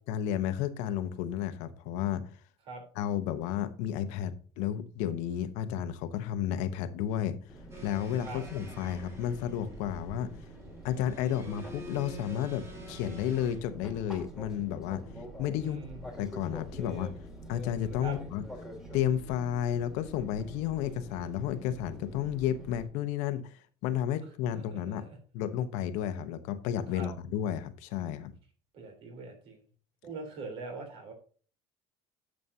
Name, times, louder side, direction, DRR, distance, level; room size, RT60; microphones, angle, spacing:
voice 1, 0.1-2.3 2.9-7.4 7.8-10.3 10.8-15.0 15.4-15.8 16.2-17.1 17.5-18.4 18.9-25.1 25.3-28.3, left 10 dB, 70° left, 1.1 m, -32 dB
Fixed-wing aircraft airplane, 7.5-22.9, equal, 5° right, 2.6 m, -46 dB
sound 1, 7.7-13.6, right 2 dB, 20° right, 2.9 m, -49 dB
voice 2, 15.6-16.0 18.0-18.2 24.5-25.2 26.9-27.1 28.7-29.6 30.0-31.1, right 3 dB, 45° right, 3.7 m, -42 dB
11.0 x 7.6 x 2.8 m
cardioid pair, 160°, 13 cm